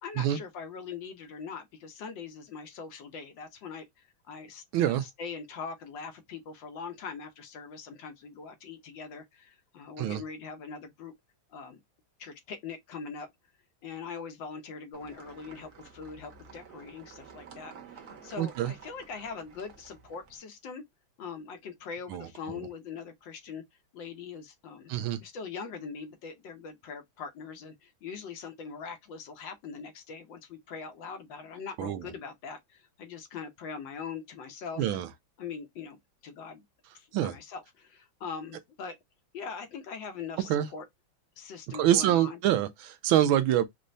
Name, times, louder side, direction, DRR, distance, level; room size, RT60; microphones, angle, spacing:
voice 1, 0.0-11.1 11.5-11.8 12.2-13.3 13.8-20.8 21.2-23.6 23.9-24.9 25.2-35.0 35.4-36.6 36.9-39.0 39.3-40.8 41.4-42.4, left 5 dB, 70° left, 1.5 m, -42 dB
voice 2, 4.7-5.0 10.0-10.2 18.4-18.7 22.1-22.3 24.9-25.2 31.8-32.0 34.8-35.1 37.1-37.3 40.5-40.7 41.8-43.6, right 12 dB, 85° right, 1.4 m, -25 dB
sound 1, 14.9-20.4, right 6 dB, 55° right, 1.4 m, -51 dB
5.4 x 2.1 x 2.5 m
omnidirectional pair, 2.2 m